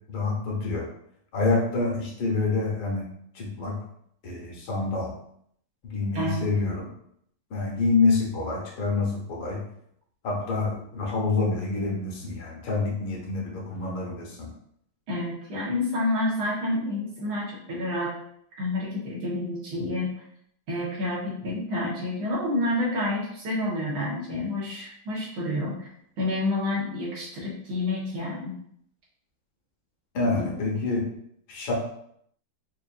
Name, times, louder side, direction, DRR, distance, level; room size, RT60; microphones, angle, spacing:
voice 1, 0.1-0.9 1.3-3.1 3.3-3.7 4.2-5.1 5.8-6.9 7.5-9.6 10.2-14.5 30.1-31.1 31.5-31.7, left 3 dB, 75° left, -2 dB, 1.7 m, -27 dB
voice 2, 15.1-18.1 18.6-20.1 20.7-25.7 26.2-28.5 30.3-30.5, left 1 dB, 80° right, -6 dB, 2.1 m, -29 dB
5.3 x 2.5 x 2.4 m, 0.69 s
omnidirectional pair, 2.3 m